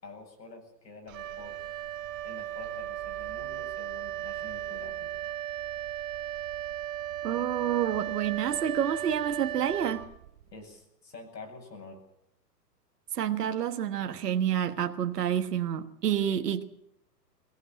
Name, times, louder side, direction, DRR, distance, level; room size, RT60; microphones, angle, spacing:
voice 1, 0.0-1.8 2.2-5.1 10.5-12.0 16.3-16.5, left 3 dB, 85° left, 8.0 m, -48 dB
Wind instrument woodwind instrument, 1.1-10.6, right 12 dB, 55° right, 1.7 m, -36 dB
voice 2, 7.2-10.0 13.1-16.6, right 9 dB, 70° right, 1.5 m, -28 dB
23.0 x 18.0 x 7.5 m
hypercardioid pair, 125°, 49 cm